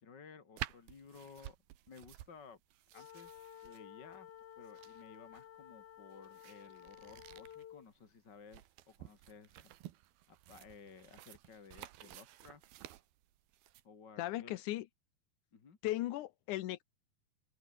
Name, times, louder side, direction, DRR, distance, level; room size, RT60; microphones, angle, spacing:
voice 1, 0.0-1.6 1.9-2.6 2.9-4.3 4.6-9.7 10.3-12.6 13.8-14.6 15.5-15.8, left 5 dB, 35° left, 2.2 m, -56 dB
sound 1, 0.6-13.8, right 14 dB, 75° right, 3.0 m, -52 dB
sound 2, 2.9-7.9, left 11 dB, 60° left, 2.6 m, -54 dB
voice 2, 14.2-14.9 15.8-16.8, left 15 dB, 80° left, 1.8 m, -37 dB
open air
omnidirectional pair, 4.5 m